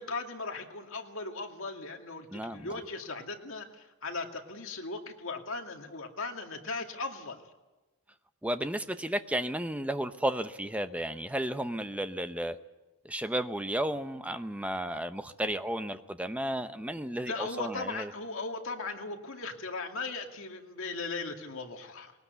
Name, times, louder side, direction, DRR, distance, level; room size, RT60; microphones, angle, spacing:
voice 1, 0.0-7.4 17.3-22.1, left 3 dB, 60° left, 3 dB, 2.3 m, -38 dB
voice 2, 2.3-2.7 8.4-12.6 13.0-18.1, right 1 dB, 5° right, 10 dB, 0.8 m, -33 dB
21.0 x 19.0 x 8.2 m, 1.1 s
head